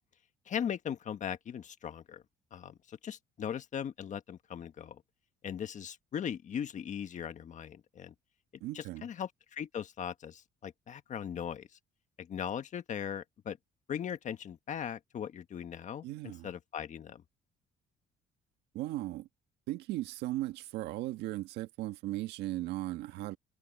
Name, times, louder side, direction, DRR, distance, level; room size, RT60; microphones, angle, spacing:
voice 1, 0.5-2.2 2.5-5.0 5.4-8.1 8.7-11.7 12.2-13.6 13.9-17.2, left 8 dB, 45° left, 1.5 m, -39 dB
voice 2, 8.6-9.1 16.0-16.5 18.7-19.3 19.7-23.4, right 16 dB, 90° right, 1.7 m, -37 dB
cardioid pair, 110°, 17 cm